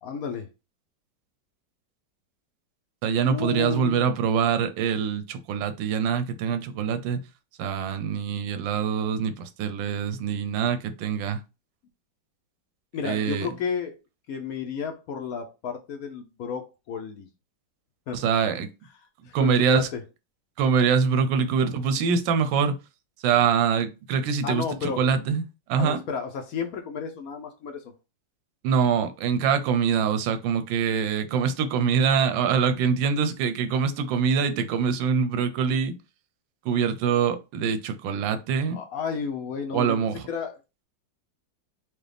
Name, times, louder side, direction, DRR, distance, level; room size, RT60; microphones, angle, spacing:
voice 1, 0.0-0.5 3.2-4.2 12.9-14.0 14.3-17.3 18.1-18.2 19.3-20.0 24.4-25.0 25.8-27.8 38.7-40.0 40.3-40.6, left 6 dB, 65° left, 0.9 m, -32 dB
voice 2, 3.0-7.2 7.6-11.4 13.0-13.5 18.1-18.7 19.3-19.9 20.6-22.8 23.2-25.4 25.7-26.0 28.6-35.9 36.6-38.8 39.7-40.3, right 6 dB, 90° right, 1.3 m, -24 dB
4.7 x 2.3 x 3.3 m
omnidirectional pair, 2.0 m